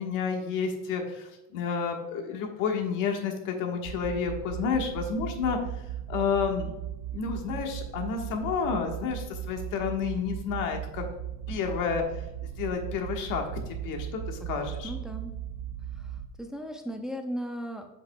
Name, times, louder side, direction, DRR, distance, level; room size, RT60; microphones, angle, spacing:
voice 1, 0.0-5.6 6.1-6.7 7.1-11.0 11.5-12.0 12.6-14.9, left 6 dB, 75° left, 3 dB, 1.5 m, -30 dB
sound 1, 3.8-16.3, right 11 dB, 70° right, 0.6 m, -37 dB
voice 2, 14.5-15.3 16.0-16.1 16.4-17.9, equal, ahead, 4 dB, 0.6 m, -37 dB
7.8 x 7.7 x 2.3 m, 0.95 s
cardioid pair, 130°, 32 cm